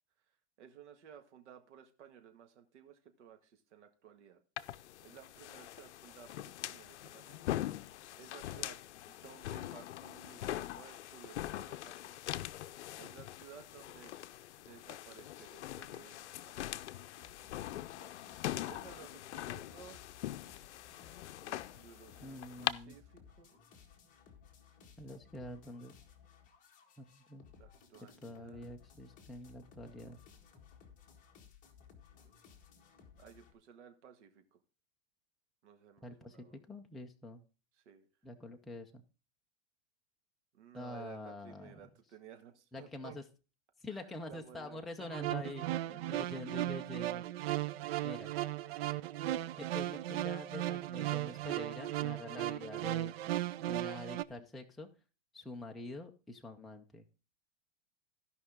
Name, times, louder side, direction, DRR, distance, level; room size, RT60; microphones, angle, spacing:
voice 1, 0.6-4.4 5.0-7.6 8.2-8.8 9.1-12.0 13.0-14.1 14.6-16.7 17.9-18.2 18.4-20.0 21.4-23.5 27.6-28.8 33.2-34.6 35.6-36.6 37.8-38.1 40.5-43.2 43.9-44.8 45.9-46.2 48.0-48.5, right 8 dB, 75° right, 6 dB, 1.8 m, -56 dB
sound 1, 4.6-22.7, left 14 dB, 75° left, 0.6 m, -42 dB
sound 2, 17.1-33.5, left 6 dB, 20° left, 1.9 m, -60 dB
voice 2, 22.2-23.0 25.0-26.0 27.0-27.5 28.2-30.2 36.0-37.4 38.2-39.0 40.7-41.8 42.7-43.2 43.8-47.2 48.0-48.3 49.6-53.1 53.7-54.9 55.3-57.0, left 2 dB, ahead, 2 dB, 0.4 m, -46 dB
sound 3, 45.0-54.2, right 14 dB, 60° right, 0.5 m, -36 dB
15.5 x 5.5 x 3.6 m, 0.33 s
supercardioid pair, 145°, 35 cm